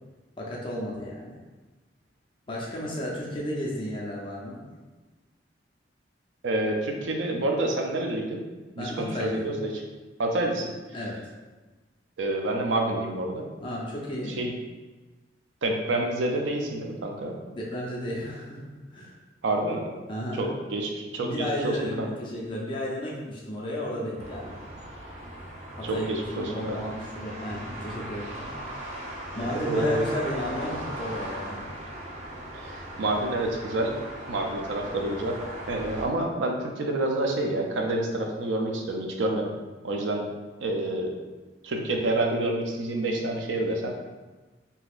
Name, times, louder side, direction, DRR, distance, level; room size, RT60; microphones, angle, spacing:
voice 1, 0.4-1.4 2.5-4.6 8.8-9.5 10.9-11.2 13.6-14.4 17.5-18.6 18.9-19.2 20.1-20.6 21.2-24.6 25.7-26.1 26.4-28.5 29.3-31.7, left 1 dB, 30° left, -4 dB, 0.6 m, -33 dB
voice 2, 6.4-8.4 8.8-9.7 10.2-10.7 12.2-13.4 14.4-14.5 15.6-17.4 19.4-19.9 20.4-22.1 25.8-26.8 29.4-30.1 32.5-33.9 34.3-35.4 35.7-39.5 39.8-40.2 40.6-41.1 41.6-43.9, right 2 dB, 85° right, 2 dB, 0.5 m, -28 dB
sound 1, 24.2-36.1, right 1 dB, 40° right, 0.8 m, -38 dB
3.8 x 2.7 x 2.4 m, 1.2 s
head